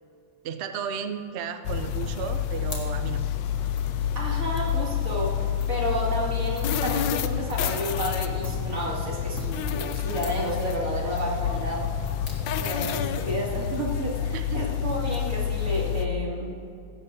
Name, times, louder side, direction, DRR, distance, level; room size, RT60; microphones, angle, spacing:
voice 1, 0.4-3.2 12.5-12.6 14.3-14.6, right 7 dB, 85° right, 9 dB, 0.5 m, -34 dB
sound 1, 1.6-16.1, left 9 dB, 85° left, 1.3 m, -28 dB
sound 2, 2.3-14.0, left 2 dB, 40° left, 2.1 m, -47 dB
voice 2, 4.2-11.8 12.5-16.5, right 1 dB, 50° right, -4 dB, 3.0 m, -31 dB
17.0 x 15.5 x 2.7 m, 2.5 s
omnidirectional pair, 2.0 m